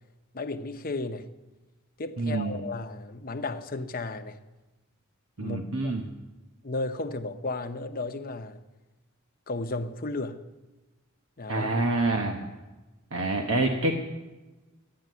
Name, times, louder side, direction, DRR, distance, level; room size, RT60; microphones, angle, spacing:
voice 1, 0.3-1.3 2.0-4.4 5.4-5.9 6.6-8.6 9.5-10.4 11.4-11.8, left 2 dB, 45° left, 0.8 m, -34 dB
voice 2, 2.2-2.6 5.4-6.0 11.5-12.5 13.1-13.9, right 2 dB, 75° right, 1.1 m, -27 dB
12.5 x 9.5 x 9.3 m
head